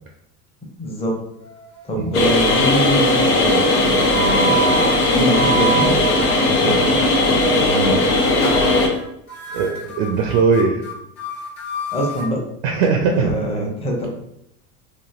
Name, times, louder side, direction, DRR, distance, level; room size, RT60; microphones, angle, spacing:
voice 1, 0.8-1.2 1.8-4.8 5.1-6.0 6.4-7.1 7.6-8.0 11.9-12.4 13.1-14.1, right 1 dB, 15° left, -1 dB, 0.8 m, -24 dB
sound 1, 1.4-2.0 2.4-2.9 3.6-6.9 7.2-7.6 8.0-8.3 8.6-8.7 8.9-9.0 9.3-12.3, right 5 dB, 45° left, 1.2 m, -28 dB
sound 2, 2.1-8.9, left 2 dB, 80° left, 0.8 m, -17 dB
voice 2, 9.5-10.8 12.6-13.4, right 5 dB, 50° right, 3 dB, 0.5 m, -19 dB
3.0 x 2.5 x 2.4 m, 0.79 s
hypercardioid pair, 85°, 46 cm